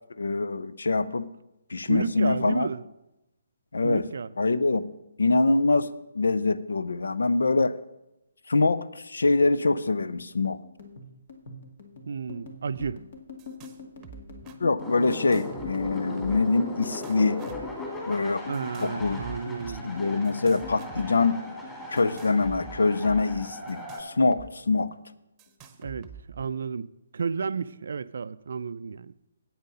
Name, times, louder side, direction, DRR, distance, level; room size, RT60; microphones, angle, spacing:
voice 1, 0.2-1.3 1.7-2.7 3.7-4.0 4.4-4.9 5.2-7.8 8.5-10.6 14.6-17.5 18.1-18.4 18.8-19.2 19.8-21.4 21.9-24.9, left 3 dB, 70° left, 0.5 m, -24 dB
voice 2, 1.8-2.8 3.8-4.3 12.1-13.1 18.5-19.9 25.8-29.1, right 5 dB, 60° right, 0.4 m, -32 dB
sound 1, 10.6-23.2 23.5-24.5 24.8-25.2 25.5-26.1, left 3 dB, 55° left, 2.0 m, -44 dB
sound 2, 12.7-12.9 13.2-13.8 14.0-14.6 15.1-16.5 16.8-17.7 18.5-19.8 20.2-21.3 22.0-24.5 24.7-24.8 25.4-26.5, right 6 dB, 20° right, 1.0 m, -46 dB
sound 3, 14.8-24.0, left 1 dB, 10° left, 2.7 m, -38 dB
8.9 x 8.7 x 5.5 m
figure-of-eight pair, 135°, 0 cm